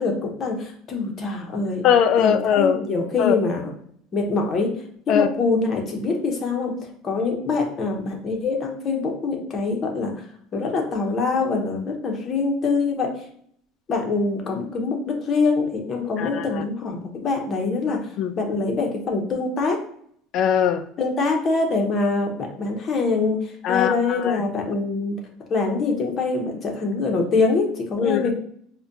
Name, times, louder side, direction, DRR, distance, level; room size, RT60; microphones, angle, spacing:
voice 1, 0.0-1.8 2.2-3.7 4.1-4.7 5.1-6.7 7.0-10.1 10.5-13.1 13.9-18.0 18.3-19.8 21.0-23.4 23.7-25.2 25.5-28.3, left 3 dB, 30° left, 0.8 m, -24 dB
voice 2, 1.8-2.8 3.2-3.4 5.1-5.3 16.2-16.6 17.9-18.3 20.3-20.8 23.6-24.4 28.0-28.3, left 8 dB, 50° left, 0.3 m, -21 dB
4.8 x 2.2 x 2.7 m
cardioid pair, 150°, 0 cm